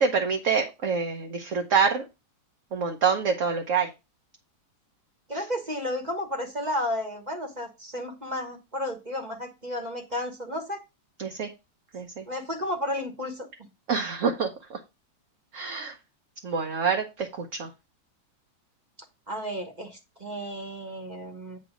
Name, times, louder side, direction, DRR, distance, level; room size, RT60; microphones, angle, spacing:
voice 1, 0.0-2.0 2.7-3.9 11.2-11.5 11.9-12.2 13.9-14.8 15.5-15.9 16.4-17.7, right 5 dB, 50° right, 3 dB, 1.1 m, -26 dB
voice 2, 5.3-10.8 12.3-13.5 19.3-21.6, left 1 dB, 25° right, 3 dB, 1.3 m, -32 dB
8.6 x 3.3 x 6.1 m, 0.25 s
omnidirectional pair, 2.0 m